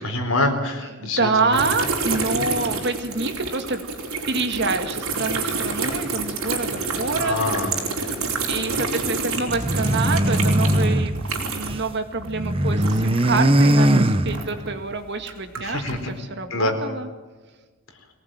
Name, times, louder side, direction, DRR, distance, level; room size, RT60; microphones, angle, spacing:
voice 1, 0.0-1.6 2.3-2.5 7.2-7.7 15.6-16.0 16.5-16.7, left 2 dB, 70° left, 4 dB, 4.3 m, -25 dB
voice 2, 0.8-3.8 4.3-7.4 7.7-7.8 8.5-17.1, right 3 dB, 55° right, 7 dB, 2.1 m, -27 dB
sound 1, 1.5-11.9 12.2-14.7 15.2-16.0, right 4 dB, 75° right, 4.5 m, -28 dB
sound 2, 9.5-11.9 12.2-14.8, right 1 dB, 25° right, 1.0 m, -20 dB
23.0 x 18.5 x 9.2 m, 1.3 s
head